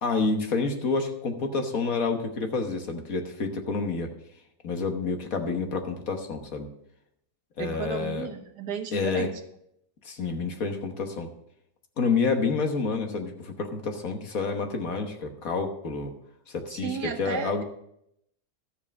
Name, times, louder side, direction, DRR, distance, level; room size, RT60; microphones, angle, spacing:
voice 1, 0.0-4.1 4.6-6.7 7.6-8.3 8.9-9.3 10.0-11.3 12.0-16.1 16.5-17.6, left 4 dB, 55° left, 5 dB, 1.6 m, -28 dB
voice 2, 7.6-9.3 16.7-17.6, right 6 dB, 75° right, 5 dB, 1.6 m, -34 dB
12.5 x 7.4 x 5.2 m, 0.75 s
omnidirectional pair, 1.8 m